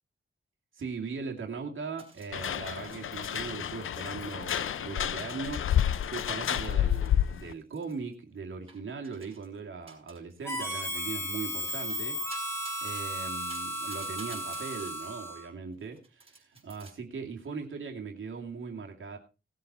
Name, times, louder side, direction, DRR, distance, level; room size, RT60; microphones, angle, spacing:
voice 1, 0.7-5.7 6.1-12.2 12.8-19.2, right 5 dB, 75° right, 1 dB, 2.4 m, -39 dB
sound 1, 2.0-3.8 4.1-4.3 4.6-8.1 8.7-9.6 9.9-10.3 10.7-14.9 15.7-16.9, right 3 dB, 30° right, 5.4 m, -53 dB
sound 2, 2.3-7.5, left 10 dB, 85° left, 0.6 m, -30 dB
Harmonica, 10.4-15.5, equal, 10° left, 2.9 m, -35 dB
18.0 x 7.7 x 4.2 m, 0.30 s
wide cardioid pair, 150°, 20 cm